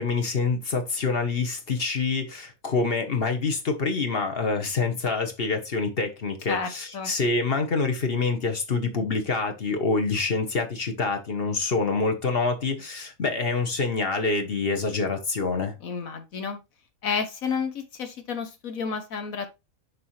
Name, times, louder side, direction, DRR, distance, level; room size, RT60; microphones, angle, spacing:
voice 1, 0.0-15.8, left 4 dB, 45° left, 1.3 m, -26 dB
voice 2, 6.5-7.1 15.8-16.6 17.0-19.6, left 5 dB, 70° left, 1.5 m, -31 dB
6.7 x 5.4 x 3.2 m
omnidirectional pair, 1.5 m